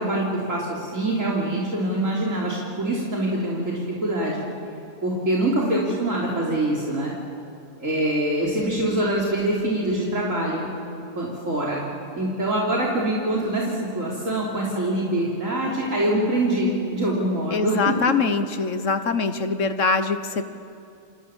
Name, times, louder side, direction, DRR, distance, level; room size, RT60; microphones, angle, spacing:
voice 1, 0.0-4.4 5.0-7.1 7.8-10.7 11.2-11.8 12.1-18.0, right 1 dB, 70° right, -4 dB, 3.8 m, -24 dB
voice 2, 17.5-20.4, left 4 dB, 65° left, 9 dB, 1.5 m, -23 dB
30.0 x 27.0 x 7.2 m, 2.6 s
omnidirectional pair, 1.4 m